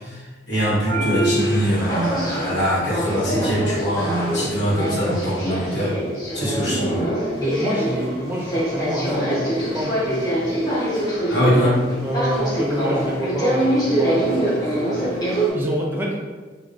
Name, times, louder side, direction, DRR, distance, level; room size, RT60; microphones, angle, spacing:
voice 1, 0.0-5.9 6.3-7.1 11.3-11.8, equal, 65° left, -7 dB, 1.2 m, -22 dB
sound 1, 0.8-15.5, right 1 dB, 20° left, 0.7 m, -24 dB
voice 2, 7.4-10.6 12.0-16.2, equal, 10° right, -3 dB, 0.5 m, -27 dB
4.7 x 2.1 x 2.5 m, 1.4 s
head